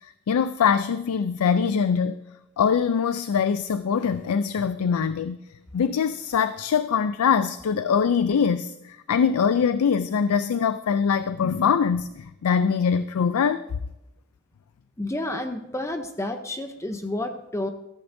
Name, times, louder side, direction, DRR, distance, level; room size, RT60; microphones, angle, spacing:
voice 1, 0.0-2.2 2.6-5.4 5.7-13.7, left 6 dB, 80° left, 13 dB, 0.4 m, -23 dB
voice 2, 15.0-17.7, left 1 dB, 15° left, 6 dB, 0.6 m, -30 dB
15.0 x 14.0 x 2.6 m, 0.90 s
head